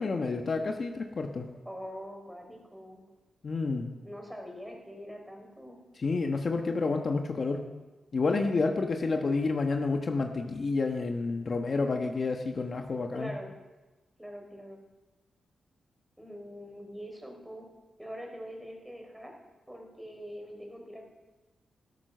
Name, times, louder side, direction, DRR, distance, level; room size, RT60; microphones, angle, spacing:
voice 1, 0.0-1.5 3.4-3.9 6.0-7.6 8.1-13.3, left 3 dB, 50° left, 4 dB, 1.2 m, -29 dB
voice 2, 1.7-3.0 4.0-5.8 13.1-13.5 14.2-14.8 16.2-17.7 18.0-19.3 19.7-21.0, equal, 5° right, 1 dB, 4.1 m, -43 dB
12.5 x 12.5 x 6.7 m, 1.2 s
cardioid pair, 75°, 0 cm